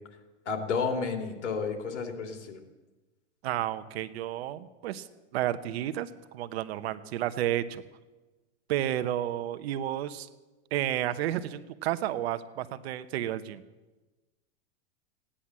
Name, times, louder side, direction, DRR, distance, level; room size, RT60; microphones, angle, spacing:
voice 1, 0.4-2.6, left 5 dB, 80° left, 5 dB, 2.9 m, -31 dB
voice 2, 3.4-5.1 5.3-7.8 8.7-10.3 10.7-13.6, right 12 dB, 60° right, 13 dB, 1.0 m, -31 dB
16.5 x 10.0 x 7.4 m, 1.2 s
supercardioid pair, 140°, 35 cm